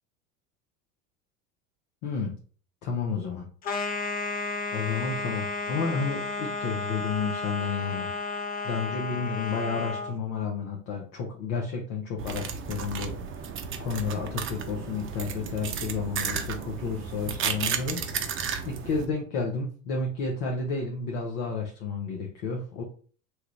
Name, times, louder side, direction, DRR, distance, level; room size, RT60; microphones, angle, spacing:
voice 1, 2.0-2.3 2.8-3.4 4.7-8.1 8.6-13.5 13.8-18.3 18.7-22.8, left 4 dB, 65° left, 0 dB, 0.9 m, -31 dB
sound 1, 3.6-10.1, left 3 dB, 25° left, 0.4 m, -32 dB
sound 2, 12.2-19.1, right 6 dB, 30° right, 0.5 m, -33 dB
3.0 x 2.4 x 3.1 m, 0.42 s
hypercardioid pair, 85°, 40 cm